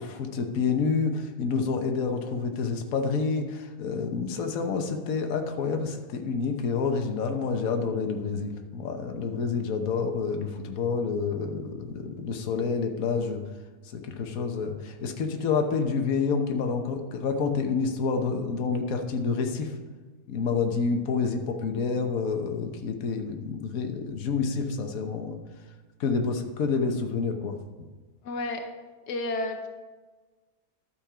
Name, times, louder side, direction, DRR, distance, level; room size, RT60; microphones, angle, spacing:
voice 1, 0.0-13.4 13.9-19.7 20.3-25.4 26.0-27.5, left 5 dB, 60° left, 4 dB, 1.4 m, -28 dB
voice 2, 28.2-28.6 29.1-29.7, left 2 dB, 80° left, 5 dB, 1.4 m, -31 dB
12.0 x 7.1 x 4.9 m, 1.3 s
omnidirectional pair, 1.7 m